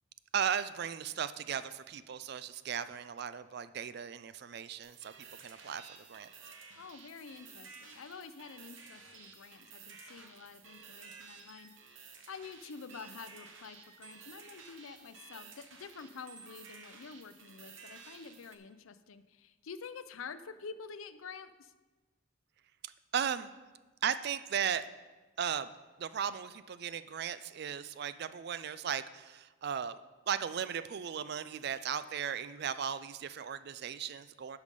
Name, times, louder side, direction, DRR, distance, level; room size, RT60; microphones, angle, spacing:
voice 1, 0.3-5.1 5.4-6.3 22.8-23.5 24.0-24.9 25.4-25.7 26.0-30.0 30.3-34.6, right 8 dB, 50° right, 14 dB, 0.4 m, -36 dB
sound 1, 4.8-18.6, right 5 dB, 65° right, 1.0 m, -53 dB
voice 2, 6.7-21.7, left 5 dB, 80° left, 12 dB, 0.5 m, -48 dB
11.5 x 5.0 x 5.3 m, 1.2 s
head